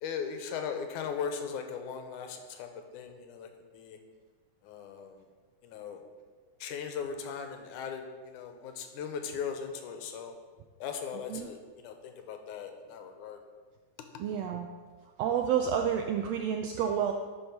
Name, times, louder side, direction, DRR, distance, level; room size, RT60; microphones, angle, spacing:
voice 1, 0.0-3.5 3.7-4.0 4.6-5.2 5.6-6.0 6.6-10.3 10.8-13.4, left 6 dB, 85° left, 5 dB, 2.3 m, -38 dB
voice 2, 14.2-14.7 15.2-17.1, right 8 dB, 85° right, 4 dB, 1.5 m, -29 dB
10.5 x 4.7 x 5.3 m, 1.5 s
omnidirectional pair, 3.5 m